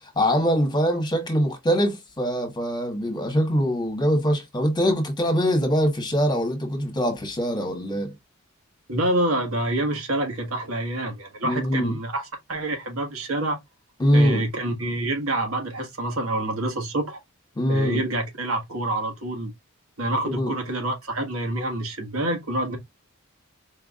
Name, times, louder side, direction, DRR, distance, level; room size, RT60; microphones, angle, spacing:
voice 1, 0.1-8.1 11.4-11.9 14.0-14.4 17.6-18.0 20.2-20.5, equal, 20° left, 1.5 m, -23 dB
voice 2, 8.9-12.2 12.5-13.6 14.1-17.2 17.7-19.5 20.0-22.8, right 1 dB, 80° right, 1.6 m, -27 dB
4.7 x 3.5 x 2.4 m
head